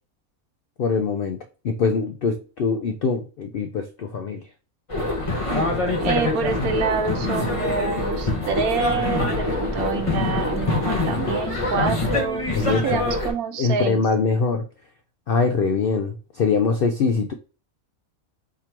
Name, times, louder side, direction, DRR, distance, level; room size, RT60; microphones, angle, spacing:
voice 1, 0.8-1.4 1.6-4.4 12.5-13.1 13.6-14.7 15.3-17.3, left 4 dB, 75° left, 0.5 m, -23 dB
sound 1, 4.9-13.3, left 2 dB, 25° left, 0.8 m, -24 dB
voice 2, 6.0-14.0, right 6 dB, 85° right, 1.2 m, -27 dB
3.6 x 2.9 x 4.4 m
omnidirectional pair, 1.5 m